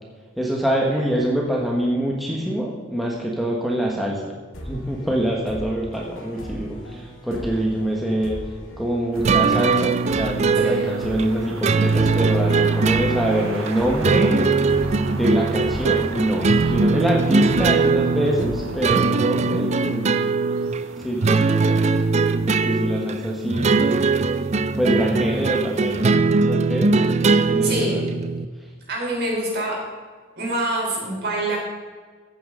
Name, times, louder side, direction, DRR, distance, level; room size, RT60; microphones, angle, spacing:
voice 1, 0.4-4.3 4.6-8.4 8.8-14.5 15.1-20.2 21.0-21.8 22.4-24.0 24.8-26.2 26.5-28.1, right 1 dB, ahead, -3 dB, 1.3 m, -25 dB
sound 1, 4.5-20.0, equal, 85° left, 2.0 m, -38 dB
sound 2, 9.1-26.0, right 4 dB, 80° right, 1.1 m, -41 dB
sound 3, 9.2-28.4, right 4 dB, 35° right, 0.4 m, -21 dB
voice 2, 27.6-28.0 28.9-29.8 30.4-31.6, right 1 dB, 50° right, -2 dB, 3.9 m, -25 dB
15.0 x 8.8 x 3.8 m, 1.5 s
head